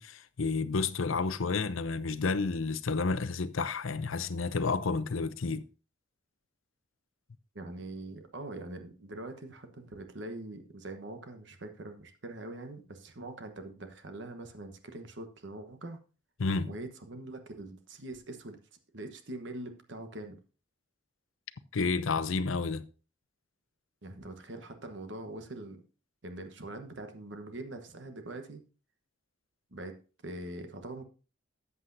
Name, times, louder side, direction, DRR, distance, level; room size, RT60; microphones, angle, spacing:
voice 1, 0.0-5.6 16.4-16.7 21.7-22.8, left 4 dB, 90° left, 0.6 m, -30 dB
voice 2, 7.5-16.0 16.7-18.6 18.9-20.4 24.0-25.8 26.2-28.6 29.7-30.0 30.2-31.0, right 2 dB, 65° right, 1.1 m, -43 dB
13.5 x 8.1 x 2.7 m
head